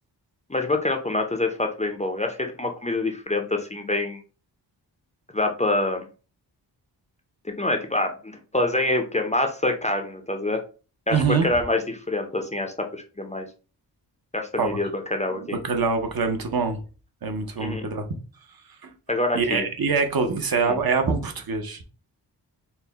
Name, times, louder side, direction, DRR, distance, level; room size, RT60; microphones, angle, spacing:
voice 1, 0.5-4.2 5.3-6.1 7.6-10.6 11.1-13.5 14.3-15.6 17.6-17.9 19.1-19.7 20.6-20.8, left 2 dB, 15° left, 0.5 m, -26 dB
voice 2, 11.1-11.5 14.6-14.8 15.3-16.8 17.2-18.1 18.8-18.9 19.3-21.8, right 5 dB, 55° right, 0.8 m, -24 dB
4.4 x 2.1 x 4.0 m
wide cardioid pair, 110°, 44 cm